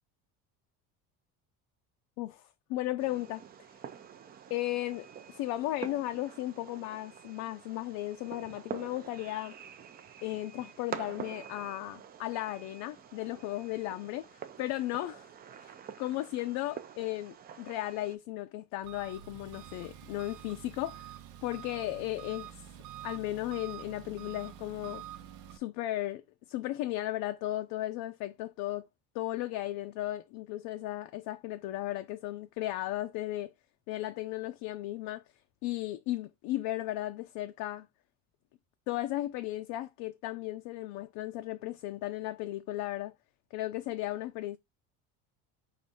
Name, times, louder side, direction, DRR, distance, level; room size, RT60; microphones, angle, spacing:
voice 1, 2.2-3.4 4.5-9.5 10.2-15.3 15.6-15.7 16.0-21.1 21.4-22.6 23.0-25.0 25.5-26.2 26.5-28.9 29.1-33.5 33.9-35.2 35.6-37.9 38.9-43.1 43.5-44.6, left 15 dB, 70° left, 0.5 m, -35 dB
Fireworks, 3.0-18.2, right 8 dB, 25° right, 0.4 m, -47 dB
Engine, 18.8-25.6, right 11 dB, 90° right, 0.8 m, -47 dB
4.8 x 2.6 x 4.0 m
cardioid pair, 140°, 35 cm